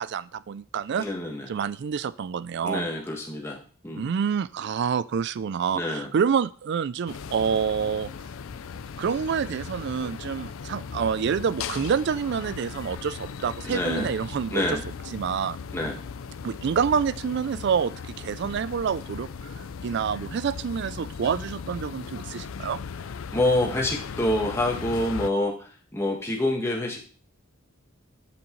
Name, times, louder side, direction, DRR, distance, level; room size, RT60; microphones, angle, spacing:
voice 1, 0.0-1.1 1.5-2.9 3.9-8.1 9.0-14.8 15.1-15.6 16.4-22.8, right 6 dB, 55° right, 18 dB, 0.3 m, -27 dB
voice 2, 1.0-1.5 2.6-4.1 5.7-6.1 13.6-14.1 14.5-14.8 15.7-16.0 23.3-27.0, left 1 dB, 15° left, -1 dB, 1.5 m, -27 dB
sound 1, 7.1-25.3, left 6 dB, 75° left, 0.5 m, -38 dB
8.0 x 7.1 x 3.1 m, 0.40 s
head